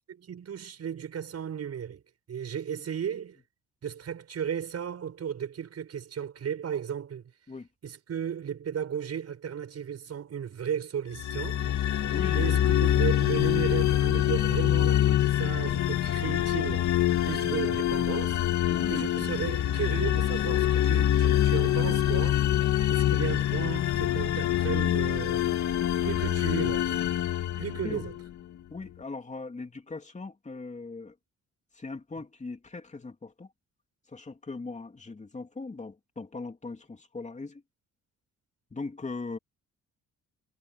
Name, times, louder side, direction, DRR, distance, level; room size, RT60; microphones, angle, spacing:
voice 1, 0.1-2.0 2.3-3.4 3.8-7.2 7.8-11.6 12.3-16.9 17.2-18.4 18.9-22.4 22.9-25.6 26.0-27.0 27.6-28.2, right 8 dB, 55° right, 7.1 m, -35 dB
sound 1, 11.1-28.3, left 12 dB, 70° left, 2.3 m, -25 dB
voice 2, 12.1-12.5 18.7-19.1 27.8-28.0 28.7-31.1 31.8-33.5 34.1-37.6 38.7-39.4, left 3 dB, 25° left, 2.9 m, -39 dB
cardioid pair, 90°, 30 cm